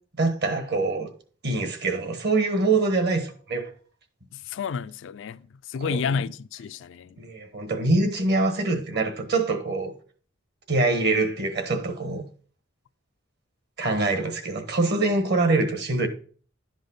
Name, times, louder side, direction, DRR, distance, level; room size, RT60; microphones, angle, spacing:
voice 1, 0.2-1.1 1.4-3.7 5.9-6.2 7.2-9.9 10.7-12.2 13.8-16.1, right 3 dB, 55° right, 1.3 m, -24 dB
voice 2, 4.3-5.4 5.7-7.2, left 6 dB, 70° left, 0.4 m, -30 dB
11.0 x 5.2 x 4.0 m
head